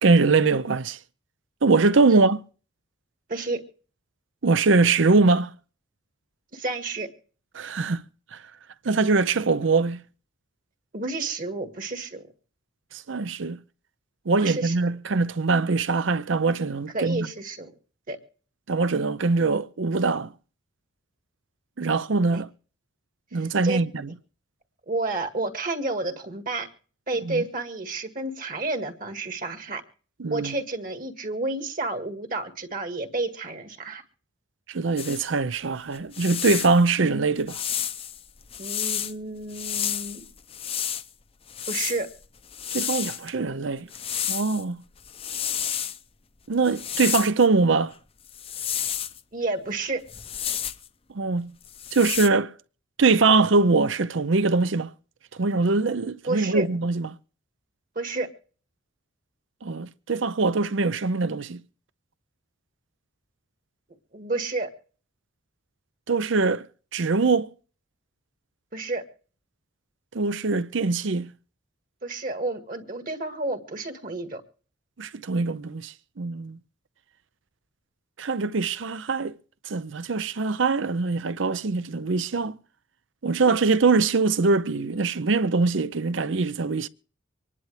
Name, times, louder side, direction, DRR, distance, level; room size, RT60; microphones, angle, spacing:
voice 1, 0.0-1.0 1.6-2.4 4.4-5.6 7.5-8.0 8.3-8.4 8.8-10.0 12.9-13.6 14.3-17.3 18.7-20.3 21.8-22.5 23.3-23.9 27.3-27.4 30.2-30.5 34.7-37.6 42.7-43.9 44.3-44.8 46.5-47.9 51.1-51.5 51.9-52.5 53.0-54.9 55.3-57.1 59.6-61.6 66.1-66.7 66.9-67.5 70.1-71.3 75.0-76.6 78.2-79.4 79.7-82.6 83.2-86.9, right 3 dB, 65° right, 0.6 m, -22 dB
voice 2, 3.3-3.6 6.5-7.1 10.9-12.3 14.4-14.8 16.9-17.7 18.1-18.2 22.3-22.4 23.3-23.8 24.9-26.7 27.1-29.8 30.3-34.0 38.6-40.3 41.7-42.1 49.3-50.0 56.3-56.7 58.0-58.3 64.1-64.7 68.7-69.0 72.0-74.4, right 2 dB, 45° right, 1.9 m, -30 dB
sound 1, 35.0-35.2 36.0-36.8 37.5-39.1 39.5-41.1 41.5-43.3 43.9-44.6 45.0-46.0 46.6-47.5 48.3-49.2 50.1-50.9 51.6-52.3, left 9 dB, 30° left, 0.6 m, -31 dB
25.0 x 11.0 x 3.3 m
head